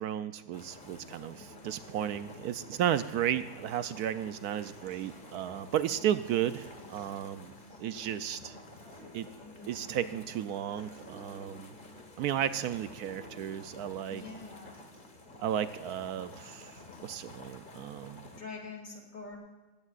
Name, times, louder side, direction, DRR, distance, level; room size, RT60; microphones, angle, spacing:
voice 1, 0.0-7.5 7.8-8.6 9.1-9.3 9.7-11.8 12.2-14.2 15.4-18.3, right 10 dB, 75° right, 12 dB, 1.1 m, -34 dB
sound 1, 0.5-18.4, left 2 dB, 30° left, 1.4 m, -51 dB
Acoustic guitar, 1.0-17.0, equal, 35° right, 4.8 m, -55 dB
voice 2, 9.4-9.8 14.1-14.8 18.3-19.4, left 4 dB, 50° left, 1 dB, 3.1 m, -45 dB
19.5 x 15.5 x 2.5 m, 1.3 s
omnidirectional pair, 1.7 m